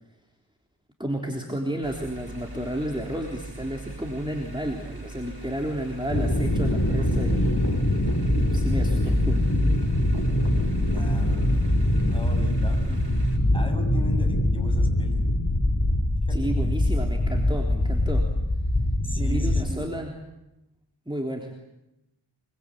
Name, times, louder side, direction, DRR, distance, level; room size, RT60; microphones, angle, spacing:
voice 1, 1.0-7.6 8.3-9.4 16.3-18.3 19.2-20.1 21.1-21.5, right 1 dB, 10° right, 1 dB, 3.6 m, -32 dB
sound 1, 1.8-13.4, right 2 dB, 60° right, 5.2 m, -40 dB
sound 2, 6.1-19.6, left 1 dB, 40° left, 4.4 m, -23 dB
voice 2, 10.8-11.8 12.0-13.0 13.5-15.5 16.3-16.9 19.0-19.8, equal, 10° left, 5 dB, 6.9 m, -38 dB
25.5 x 24.5 x 9.0 m, 0.90 s
wide cardioid pair, 45°, 46 cm